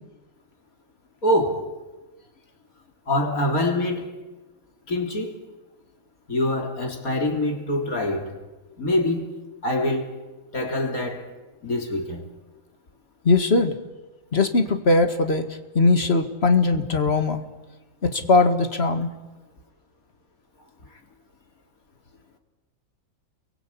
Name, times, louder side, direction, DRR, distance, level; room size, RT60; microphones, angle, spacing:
voice 1, 1.2-1.7 3.1-4.2 4.9-5.4 6.3-8.3 8.8-9.3 9.6-10.1 10.5-11.3 11.6-12.2, left 1 dB, 85° left, 3.8 m, -24 dB
voice 2, 13.2-13.8 14.3-17.4 18.0-19.1, left 3 dB, 45° left, 2.1 m, -20 dB
30.0 x 23.0 x 8.5 m
omnidirectional pair, 1.5 m